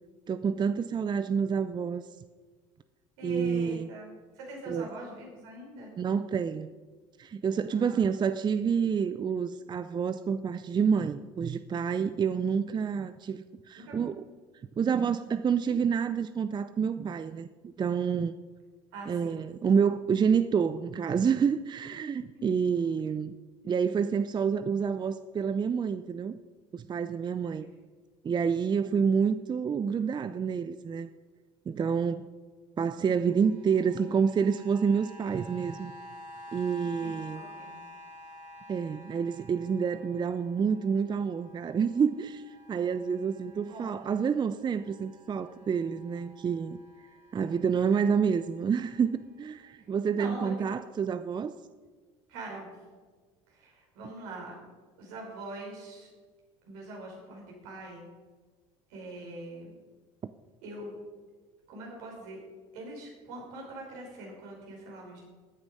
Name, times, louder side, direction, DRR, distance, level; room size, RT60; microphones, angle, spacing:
voice 1, 0.3-2.0 3.2-3.9 4.7-4.9 6.0-6.7 7.2-14.2 14.8-18.3 19.1-23.3 23.6-26.4 26.7-27.7 28.2-31.1 31.7-32.3 32.8-35.9 36.5-37.4 38.7-46.8 47.3-51.5, right 6 dB, 30° right, 12 dB, 0.5 m, -28 dB
voice 2, 3.2-5.9 7.7-8.0 13.7-14.0 18.9-19.5 22.3-22.6 27.6-27.7 37.0-37.8 43.6-44.1 49.8-49.9 50.1-50.7 52.3-52.7 53.5-54.6 55.0-56.1 56.6-58.0 58.9-59.8 60.6-60.9 61.7-62.4 62.7-65.2, right 1 dB, 75° right, -1 dB, 5.2 m, -43 dB
sound 1, 33.2-44.2 44.5-49.2 49.8-49.9, left 1 dB, 50° right, 3.3 m, -50 dB
14.5 x 9.6 x 5.4 m, 1.4 s
hypercardioid pair, 75°, 16 cm